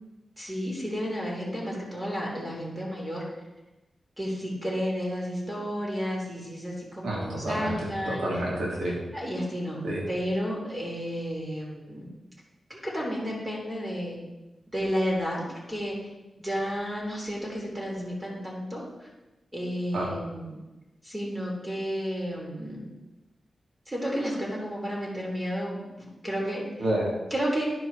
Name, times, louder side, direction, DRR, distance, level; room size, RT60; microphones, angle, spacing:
voice 1, 0.4-3.2 4.2-8.3 9.1-12.1 12.7-14.2 14.7-16.0 16.4-19.1 19.5-20.5 21.0-22.9 23.9-25.8 26.2-26.6 27.3-27.6, equal, 20° right, -4 dB, 3.4 m, -32 dB
voice 2, 7.0-9.0 9.8-10.0 19.9-20.1 26.8-27.1, right 1 dB, 75° right, -3 dB, 2.6 m, -29 dB
10.5 x 4.8 x 5.1 m, 1.1 s
cardioid pair, 60°, 0 cm